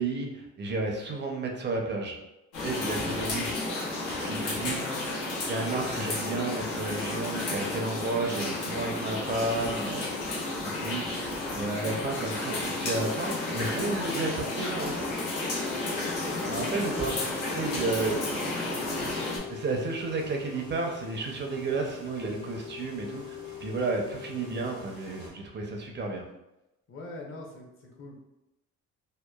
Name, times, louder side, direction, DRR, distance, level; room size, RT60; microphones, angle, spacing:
voice 1, 0.0-2.2 2.6-3.9 4.2-4.8 5.5-10.1 10.6-11.1 11.5-15.0 16.5-18.2 19.5-23.3 23.6-26.3, right 3 dB, 35° right, 1 dB, 0.5 m, -32 dB
sound 1, 2.5-19.4, left 2 dB, 90° left, 0.7 m, -32 dB
voice 2, 4.6-5.2 16.2-16.5 18.0-19.1 26.9-28.2, left 2 dB, 45° left, -1 dB, 0.7 m, -43 dB
sound 2, 12.9-25.3, left 7 dB, 65° left, 1.3 m, -44 dB
2.8 x 2.1 x 2.2 m, 0.93 s
cardioid pair, 90°, 30 cm